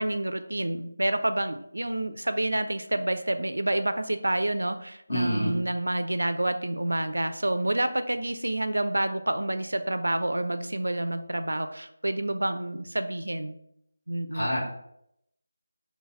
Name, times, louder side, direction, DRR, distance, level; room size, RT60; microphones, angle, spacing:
voice 1, 0.0-13.6 14.1-14.5, right 1 dB, 80° right, 9 dB, 0.4 m, -28 dB
voice 2, 5.1-5.6 14.3-14.6, equal, 60° left, -3 dB, 1.5 m, -27 dB
4.0 x 2.2 x 4.1 m, 0.75 s
figure-of-eight pair, 160°, 0 cm